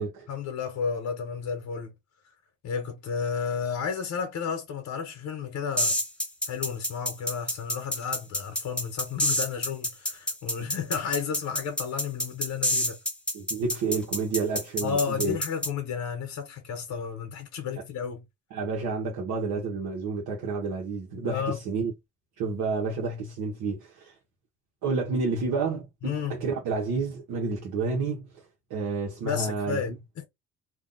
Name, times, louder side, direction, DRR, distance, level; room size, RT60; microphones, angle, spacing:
voice 1, 0.3-1.9 2.6-6.0 6.5-13.0 14.8-18.3 21.2-21.6 26.0-26.4 29.2-30.3, left 6 dB, 65° left, 0.9 m, -32 dB
sound 1, 5.8-15.7, left 1 dB, 5° left, 0.8 m, -28 dB
voice 2, 13.3-15.4 18.5-21.9 22.4-24.1 24.8-28.3 28.7-30.0, right 4 dB, 85° right, 1.0 m, -30 dB
2.6 x 2.2 x 3.7 m
cardioid pair, 90°, 30 cm